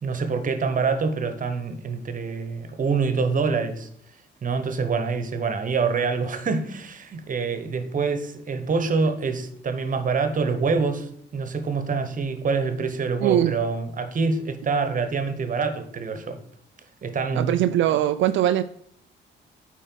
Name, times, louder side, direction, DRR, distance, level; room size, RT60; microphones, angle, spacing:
voice 1, 0.0-3.9 4.4-16.4 17.0-17.5, right 4 dB, 40° right, 1.1 m, -26 dB
voice 2, 13.2-13.6 17.3-18.6, right 12 dB, 75° right, 0.4 m, -21 dB
8.9 x 4.5 x 4.5 m
cardioid pair, 90°, 20 cm